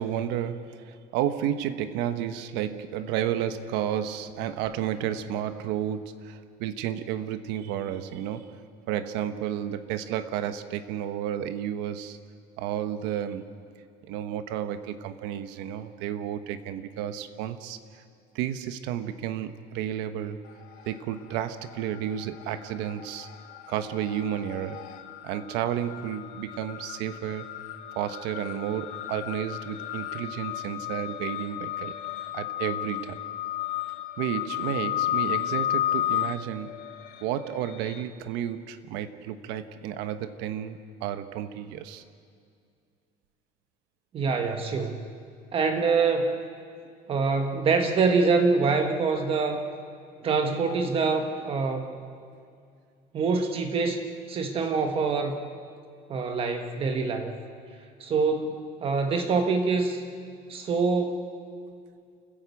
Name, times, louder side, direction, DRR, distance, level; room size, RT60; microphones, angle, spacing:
voice 1, 0.0-8.6 8.9-12.2 12.6-13.5 14.1-18.0 18.3-20.4 20.8-23.3 23.7-24.9 25.2-27.5 27.9-31.9 32.3-33.2 34.2-36.8 37.2-42.0, right 10 dB, 90° right, 10 dB, 1.2 m, -32 dB
sound 1, 20.5-21.1 21.4-38.0, left 13 dB, 55° left, 1.3 m, -33 dB
voice 2, 44.1-45.0 45.5-46.4 47.1-49.6 50.2-51.9 53.1-54.0 54.3-55.4 56.1-57.4 58.0-60.0 60.5-61.3, right 4 dB, 35° right, 5 dB, 1.4 m, -25 dB
29.0 x 14.5 x 8.4 m, 2.3 s
cardioid pair, 175°, 17 cm